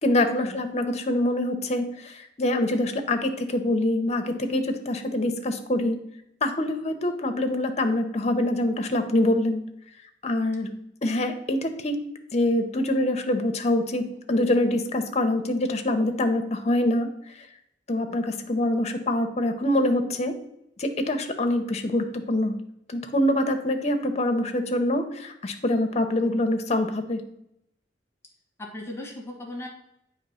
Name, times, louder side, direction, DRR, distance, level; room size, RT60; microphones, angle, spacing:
voice 1, 0.0-6.0 6.4-9.7 10.2-12.0 12.3-17.1 17.9-20.4 20.8-22.6 22.9-27.2, left 1 dB, 40° left, 6 dB, 0.8 m, -25 dB
voice 2, 28.6-29.7, left 1 dB, 15° left, 0 dB, 1.4 m, -37 dB
8.7 x 3.2 x 5.6 m, 0.80 s
head